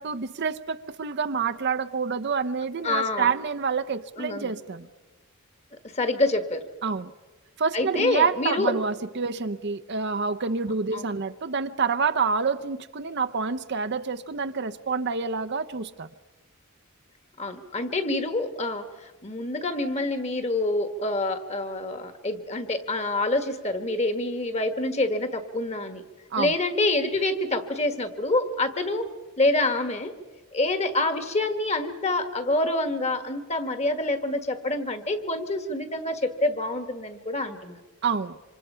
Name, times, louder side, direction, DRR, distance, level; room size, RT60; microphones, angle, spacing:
voice 1, 0.0-4.9 6.8-7.1 7.6-16.1 26.3-26.5 38.0-38.4, right 5 dB, 50° right, 0.7 m, -27 dB
voice 2, 2.8-3.3 4.2-4.5 5.9-6.7 7.7-8.7 10.9-11.1 17.4-26.0 26.4-29.1 29.4-30.1 30.5-37.8, left 2 dB, 30° left, 1.6 m, -27 dB
27.0 x 26.0 x 5.6 m
head